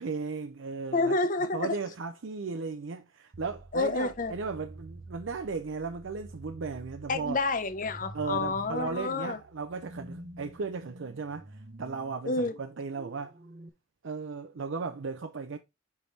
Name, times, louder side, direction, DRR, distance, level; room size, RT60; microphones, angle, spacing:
voice 1, 0.0-1.2 1.5-7.4 8.1-13.4 14.0-15.6, right 4 dB, 60° right, 0.5 m, -36 dB
voice 2, 0.9-1.8 3.7-4.3 7.1-9.4 12.2-12.5, left 3 dB, 40° left, 0.6 m, -29 dB
sound 1, 3.3-13.7, right 2 dB, 45° right, 0.9 m, -48 dB
5.2 x 4.7 x 4.0 m
head